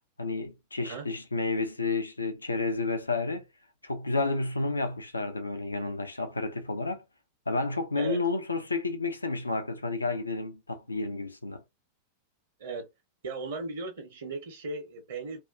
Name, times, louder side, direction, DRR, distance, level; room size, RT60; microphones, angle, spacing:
voice 1, 0.2-3.5 3.8-7.0 7.5-11.6, left 3 dB, 80° left, 0.4 m, -31 dB
voice 2, 13.2-15.4, right 3 dB, 60° right, 0.7 m, -37 dB
2.4 x 2.2 x 2.3 m
figure-of-eight pair, 90°, 0 cm